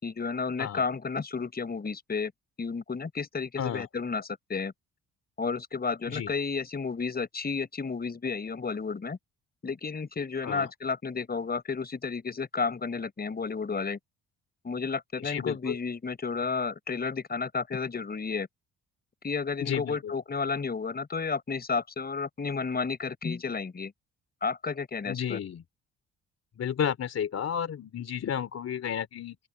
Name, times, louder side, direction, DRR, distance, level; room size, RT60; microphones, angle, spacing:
voice 1, 0.0-2.3 2.6-4.7 5.4-9.2 9.6-14.0 14.6-18.5 19.2-23.9 24.4-25.4, left 5 dB, 30° left, 5.2 m, -32 dB
voice 2, 3.6-3.9 6.1-6.3 10.4-10.7 15.2-15.7 19.6-20.1 25.1-25.6 26.6-29.4, left 8 dB, 55° left, 3.1 m, -32 dB
open air
cardioid pair, 90°, 30 cm